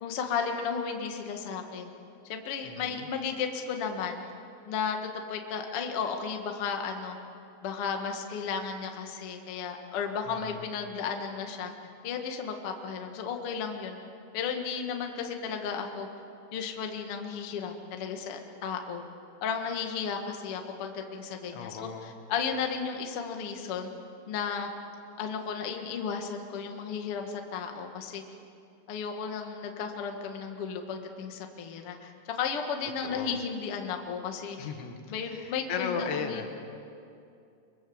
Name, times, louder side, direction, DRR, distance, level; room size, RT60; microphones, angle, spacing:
voice 1, 0.0-1.9 2.3-4.2 4.6-7.2 7.6-11.7 12.0-14.0 14.3-16.1 16.5-19.0 19.4-23.9 24.3-24.7 25.2-28.2 28.9-34.6 35.1-36.4, left 6 dB, 90° left, 4 dB, 1.2 m, -34 dB
voice 2, 2.6-3.1 10.3-10.7 21.5-22.1 33.0-33.4 34.6-35.0 35.3-36.5, left 6 dB, 75° left, 5 dB, 3.9 m, -36 dB
24.0 x 23.5 x 7.1 m, 2.6 s
omnidirectional pair, 5.4 m